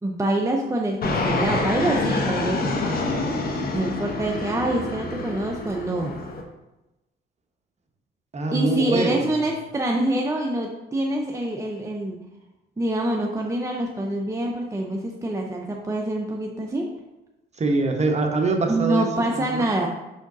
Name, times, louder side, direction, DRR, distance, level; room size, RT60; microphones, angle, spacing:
voice 1, 0.0-3.1 3.7-6.2 8.5-12.2 12.8-16.9 18.7-19.9, right 1 dB, 15° right, 0 dB, 0.7 m, -26 dB
Fixed-wing aircraft airplane, 1.0-6.4, left 2 dB, 50° left, 1.1 m, -27 dB
voice 2, 8.3-9.3 17.6-19.1 19.4-19.6, right 3 dB, 35° right, 3 dB, 1.1 m, -23 dB
5.8 x 5.0 x 4.0 m, 0.98 s
cardioid pair, 90°, 20 cm